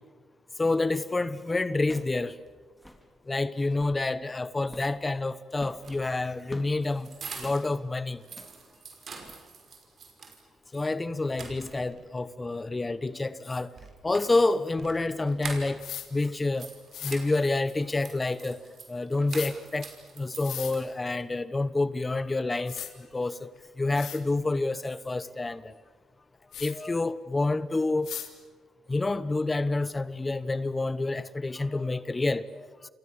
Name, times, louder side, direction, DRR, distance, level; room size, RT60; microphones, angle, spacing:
voice 1, 0.6-2.3 3.3-7.1 7.4-8.2 10.7-13.7 14.0-15.8 16.1-16.7 17.0-18.6 18.9-19.9 20.2-23.5 23.8-25.7 26.6-28.1 28.9-32.9, left 2 dB, 20° left, 1.1 m, -28 dB
sound 1, 1.8-2.2 2.5-2.6 2.7-3.1 3.6-4.0 4.6-5.0 5.5-6.8 7.4-7.7 8.2-8.6 9.2-9.4, left 1 dB, 5° left, 3.6 m, -48 dB
sound 2, 5.7-7.8 8.1-10.4 10.8-10.9 11.3-12.1 13.7-16.0 16.3-21.2, right 5 dB, 55° right, 5.6 m, -45 dB
sound 3, 15.8-16.1 16.9-17.2 19.3-19.5 20.3-20.7 22.2-22.3 22.7-22.9 23.6-23.7 23.9-24.2 26.5-26.7 28.0-28.3, left 10 dB, 75° left, 3.0 m, -37 dB
28.5 x 28.0 x 7.4 m
cardioid pair, 90°, 0 cm